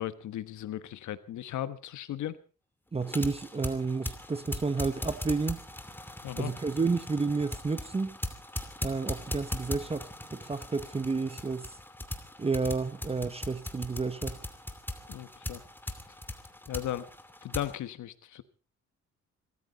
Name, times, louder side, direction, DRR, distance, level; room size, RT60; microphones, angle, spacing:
voice 1, 0.0-2.4 6.2-6.5 15.1-15.6 16.7-17.1 17.4-18.4, left 12 dB, 75° left, 1.3 m, -36 dB
voice 2, 2.9-5.6 6.4-8.2 8.8-11.8 12.4-14.4, right 4 dB, 20° right, 1.0 m, -31 dB
sound 1, 3.0-17.8, left 1 dB, 5° left, 2.6 m, -40 dB
25.0 x 14.0 x 4.1 m
cardioid pair, 90°, 30 cm